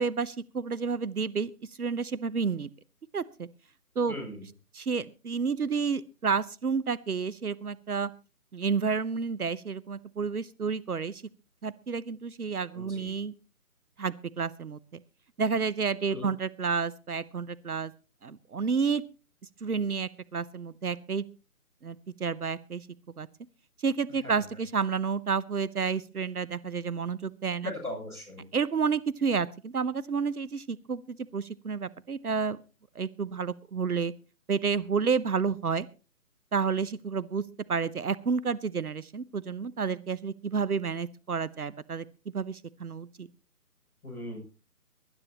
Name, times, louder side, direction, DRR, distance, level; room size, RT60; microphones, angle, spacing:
voice 1, 0.0-2.7 3.1-3.5 4.0-4.2 4.7-8.1 8.5-11.2 11.6-13.3 14.0-14.8 15.4-17.9 18.2-19.0 19.6-21.2 21.8-22.9 23.2-23.3 23.8-27.7 28.5-32.6 33.0-34.1 34.5-35.9 36.5-37.4 37.7-42.0 42.3-43.3, right 5 dB, 70° right, 16 dB, 0.9 m, -30 dB
voice 2, 4.1-4.4 12.7-13.1 16.1-16.3 24.2-24.3 27.6-28.5 44.0-44.4, left 1 dB, 5° left, -7 dB, 6.9 m, -38 dB
23.0 x 12.0 x 3.0 m, 0.33 s
figure-of-eight pair, 150°, 46 cm